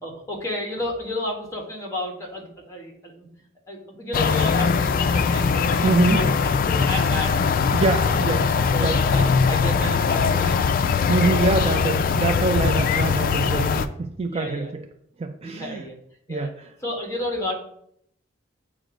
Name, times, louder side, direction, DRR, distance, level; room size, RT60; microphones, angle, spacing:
voice 1, 0.0-3.3 3.7-6.3 6.7-7.4 7.9-8.3 8.7-10.7 11.2-11.5 12.6-12.7 14.3-14.7 15.4-16.0 16.3-16.5 16.8-17.5, left 1 dB, 15° left, 0 dB, 1.2 m, -32 dB
sound 1, 4.1-13.9, left 5 dB, 45° left, 0.3 m, -21 dB
voice 2, 5.8-6.3 7.7-8.5 8.8-9.0 11.1-14.8 15.2-15.8 16.3-16.5, right 3 dB, 30° right, 6 dB, 0.4 m, -24 dB
7.5 x 2.5 x 5.0 m, 0.70 s
head